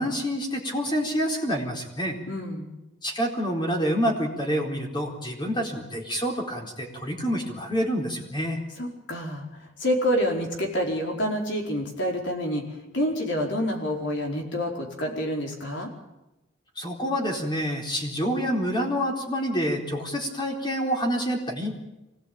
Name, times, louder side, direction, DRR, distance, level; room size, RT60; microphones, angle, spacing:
voice 1, 0.0-2.2 3.0-8.6 16.8-21.7, equal, 25° left, 1 dB, 4.2 m, -27 dB
voice 2, 2.3-2.7 8.8-12.6 12.9-15.9, equal, 65° left, 1 dB, 4.7 m, -28 dB
24.0 x 18.0 x 8.9 m, 0.96 s
head